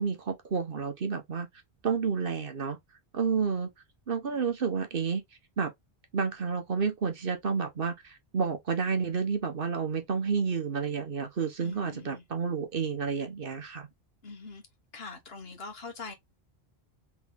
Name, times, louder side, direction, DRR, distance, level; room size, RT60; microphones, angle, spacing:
voice 1, 0.0-1.5 1.8-2.8 3.1-3.7 4.1-5.2 5.6-5.7 6.1-13.9, right 5 dB, 60° right, 1.2 m, -30 dB
voice 2, 11.6-12.2 14.2-14.6 14.9-16.1, left 4 dB, 70° left, 1.5 m, -43 dB
3.6 x 3.4 x 3.4 m
omnidirectional pair, 1.1 m